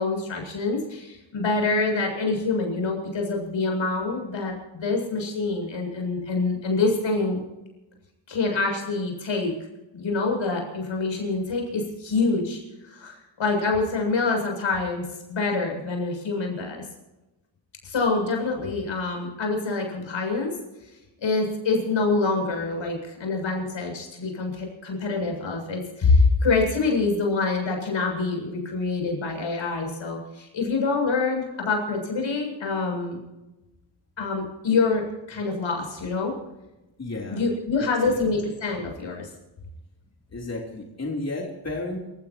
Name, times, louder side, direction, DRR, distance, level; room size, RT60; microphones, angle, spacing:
voice 1, 0.0-7.4 8.3-9.5 9.9-16.8 17.8-20.5 21.2-33.2 34.2-36.3 37.3-39.3, left 3 dB, 80° left, 1 dB, 7.6 m, -26 dB
voice 2, 37.0-37.4 38.1-38.2 40.3-42.0, left 2 dB, 35° left, -1 dB, 3.7 m, -32 dB
28.5 x 16.5 x 3.0 m, 1.0 s
wide cardioid pair, 105°, 45 cm